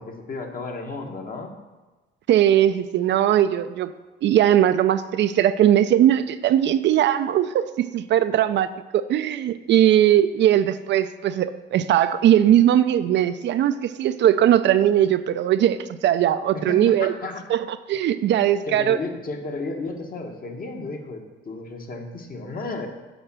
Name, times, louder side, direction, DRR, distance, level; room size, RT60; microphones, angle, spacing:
voice 1, 0.0-1.5 16.5-17.4 18.7-22.9, left 3 dB, 45° left, 3 dB, 1.3 m, -33 dB
voice 2, 2.3-3.9 4.2-17.1 17.5-19.0, right 11 dB, 65° right, 12 dB, 0.4 m, -19 dB
7.9 x 4.4 x 6.1 m, 1.2 s
cardioid pair, 90°, 20 cm